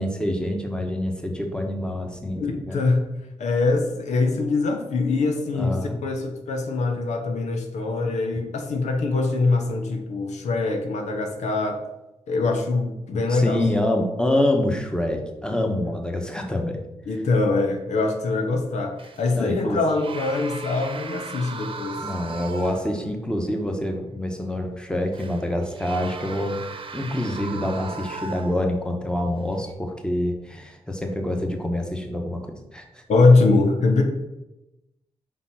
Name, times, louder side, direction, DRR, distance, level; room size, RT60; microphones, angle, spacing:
voice 1, 0.0-2.8 5.5-6.0 13.1-16.8 19.3-19.8 22.0-26.6 26.9-33.0, left 1 dB, 5° left, 3 dB, 1.3 m, -26 dB
voice 2, 2.4-3.0 3.4-11.8 12.3-13.6 17.1-22.0 33.1-34.0, left 3 dB, 80° left, 4 dB, 1.0 m, -23 dB
sound 1, 19.0-19.4 19.9-23.1 23.5-23.6 25.1-28.8 29.5-29.7, right 4 dB, 50° right, 0.9 m, -37 dB
5.2 x 4.1 x 5.8 m, 0.95 s
cardioid pair, 55°, 12 cm